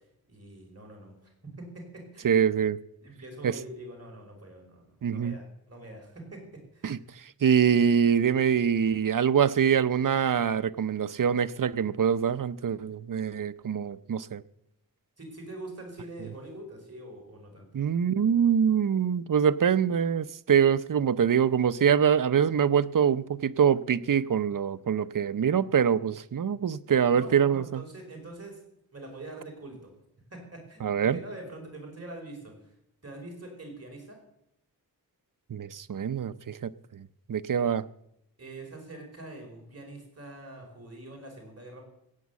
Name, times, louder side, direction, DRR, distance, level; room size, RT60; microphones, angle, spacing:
voice 1, 0.3-2.3 3.0-6.4 6.7-7.0 15.2-17.7 27.1-28.6 28.9-29.9 30.3-32.7 33.0-34.2 37.6-37.7 38.4-41.8, right 2 dB, 40° right, 5.3 m, -44 dB
voice 2, 2.2-2.8 3.4-3.5 5.0-5.4 6.8-7.0 7.4-14.4 17.7-27.8 30.8-31.2 35.5-37.8, right 7 dB, 60° right, 0.7 m, -24 dB
16.0 x 8.3 x 8.2 m
wide cardioid pair, 65°, 37 cm